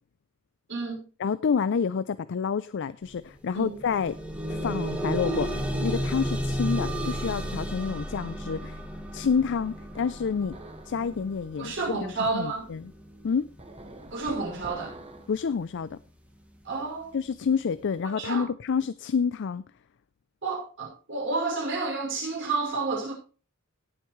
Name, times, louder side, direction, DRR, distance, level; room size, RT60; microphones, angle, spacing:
voice 1, 0.7-1.1 3.5-3.8 11.6-12.7 14.1-14.9 16.6-17.2 18.0-18.5 20.4-23.1, right 3 dB, 60° right, 5.8 m, -30 dB
voice 2, 1.2-4.2 4.5-8.8 9.1-10.6 10.9-12.8 13.2-13.5 15.3-16.0 17.1-19.6, left 6 dB, 60° left, 0.4 m, -28 dB
sound 1, 3.1-3.2 3.6-14.6 15.4-15.5 15.9-16.0, equal, 5° right, 1.9 m, -33 dB
sound 2, 9.9-11.0 13.6-15.3, right 2 dB, 30° right, 1.6 m, -45 dB
18.0 x 8.0 x 3.1 m
head